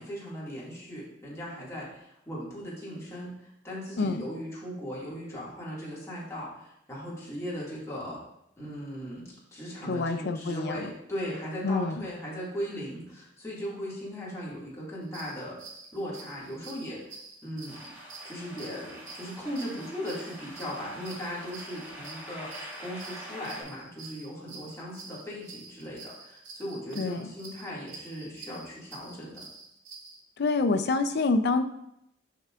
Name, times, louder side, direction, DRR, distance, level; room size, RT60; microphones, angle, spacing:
voice 1, 0.0-8.2 8.6-15.6 15.9-17.0 17.4-17.9 18.2-22.5 22.8-29.4, equal, 15° left, -7 dB, 2.1 m, -38 dB
voice 2, 9.9-10.8 11.6-12.0 27.0-27.3 30.4-31.6, left 3 dB, 60° left, 10 dB, 0.5 m, -27 dB
sound 1, 15.0-30.2, right 3 dB, 90° right, 1.0 m, -48 dB
sound 2, 17.7-23.6, equal, 10° right, 2.2 m, -45 dB
8.3 x 5.5 x 2.5 m, 0.80 s
head